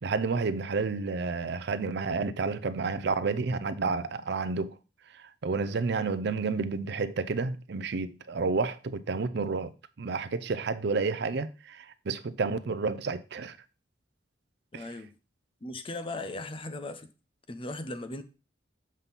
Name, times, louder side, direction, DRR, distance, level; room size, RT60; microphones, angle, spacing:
voice 1, 0.0-4.7 5.1-9.7 10.0-13.6 14.7-14.8, right 4 dB, 65° right, 0.5 m, -30 dB
voice 2, 14.7-15.2 15.6-17.1 17.5-18.2, left 2 dB, 30° left, 0.7 m, -38 dB
7.4 x 5.4 x 4.1 m
head